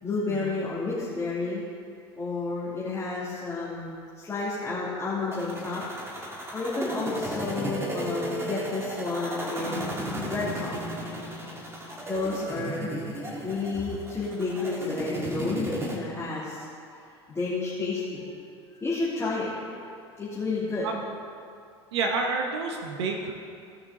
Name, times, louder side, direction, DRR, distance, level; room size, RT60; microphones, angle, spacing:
voice 1, 0.0-1.6 2.2-5.8 6.5-10.0 10.2-10.7 12.1-13.0 13.4-16.7 17.3-18.3 18.7-19.5 20.2-20.9, left 3 dB, 20° left, -9 dB, 2.5 m, -31 dB
sound 1, 5.3-16.0, equal, 15° right, 2.0 m, -34 dB
voice 2, 21.9-23.4, right 4 dB, 70° right, 2 dB, 1.0 m, -29 dB
16.5 x 6.1 x 3.8 m, 2.4 s
hypercardioid pair, 80°, 14 cm